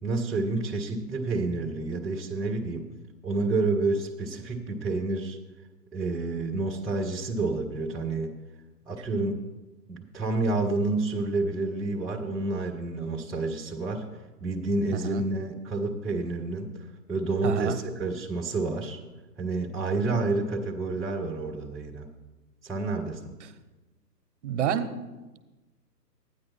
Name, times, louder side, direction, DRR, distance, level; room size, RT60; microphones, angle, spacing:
voice 1, 0.0-2.8 3.2-5.4 5.9-8.3 8.9-9.4 9.9-14.0 14.4-16.7 17.1-19.0 19.4-22.1 22.6-23.3, right 3 dB, ahead, -8 dB, 0.3 m, -29 dB
voice 2, 14.9-15.2 17.4-17.8 23.4-23.5 24.4-25.0, right 9 dB, 45° right, 10 dB, 0.9 m, -29 dB
12.5 x 9.6 x 4.1 m, 1.2 s
hypercardioid pair, 145°, 49 cm